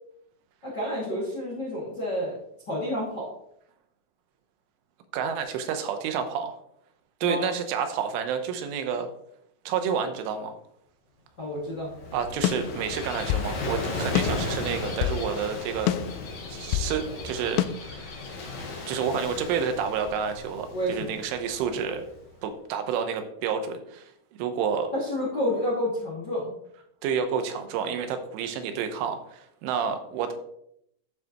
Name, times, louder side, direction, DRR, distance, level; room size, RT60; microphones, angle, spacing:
voice 1, 0.6-2.4 2.7-3.3 7.2-7.5 11.4-11.9 20.7-21.1 24.9-26.5, left 1 dB, 40° left, -4 dB, 1.6 m, -29 dB
voice 2, 5.1-6.6 7.2-9.1 9.7-10.6 12.1-16.0 16.5-18.2 18.9-22.0 22.4-24.1 24.4-24.9 27.0-30.3, right 7 dB, 90° right, 7 dB, 3.5 m, -29 dB
Gull seagull / Waves surf, 11.6-22.2, left 3 dB, 55° left, 2.1 m, -36 dB
sound 1, 12.4-13.5 14.2-15.2 15.9-16.9 17.6-17.7, left 12 dB, 85° left, 2.8 m, -27 dB
11.5 x 7.3 x 3.0 m, 0.73 s
omnidirectional pair, 5.4 m